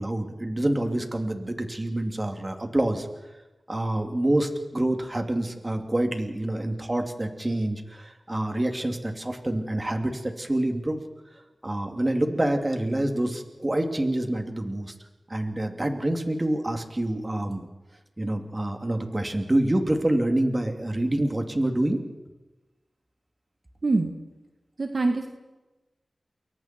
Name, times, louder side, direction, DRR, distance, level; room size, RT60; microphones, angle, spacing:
voice 1, 0.0-3.1 3.7-11.0 11.6-14.9 15.3-17.6 18.2-22.0, right 1 dB, 30° right, 4 dB, 3.1 m, -27 dB
voice 2, 23.8-24.1 24.8-25.3, right 3 dB, 60° right, 4 dB, 1.9 m, -24 dB
29.0 x 22.5 x 4.6 m, 1.1 s
wide cardioid pair, 55°, 0 cm